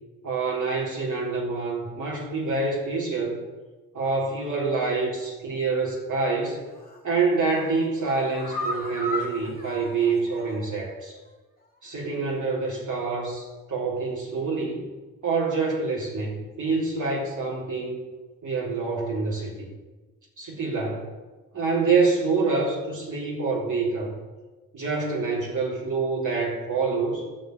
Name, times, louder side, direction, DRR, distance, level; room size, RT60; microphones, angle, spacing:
voice 1, 0.2-3.4 3.9-6.6 7.0-11.2 11.8-14.8 15.2-18.1 18.4-19.7 20.4-21.1 21.5-24.2 24.7-27.2, right 4 dB, 45° right, -4 dB, 3.8 m, -26 dB
sound 1, 6.7-7.0 7.4-10.8 11.1-11.2 11.6-11.7, left 1 dB, 20° left, 3.4 m, -35 dB
11.5 x 5.5 x 8.4 m, 1.2 s
figure-of-eight pair, 40°, 41 cm